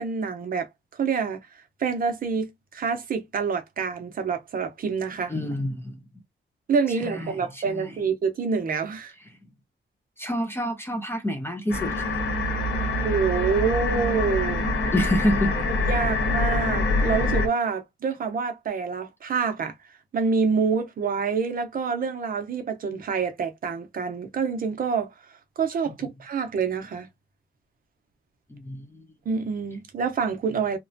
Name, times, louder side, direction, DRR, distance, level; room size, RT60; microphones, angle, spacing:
voice 1, 0.0-5.3 6.7-9.1 12.9-14.7 15.9-19.7 20.1-25.1 25.6-27.1 29.3-30.8, right 5 dB, 45° right, 0.6 m, -27 dB
voice 2, 5.3-6.0 7.0-7.9 10.2-12.2 14.9-15.7 25.9-26.1 28.5-29.1, left 1 dB, 10° left, 0.4 m, -28 dB
sound 1, 11.7-17.5, left 2 dB, 85° left, 1.3 m, -25 dB
2.9 x 2.1 x 2.6 m
wide cardioid pair, 165°, 20 cm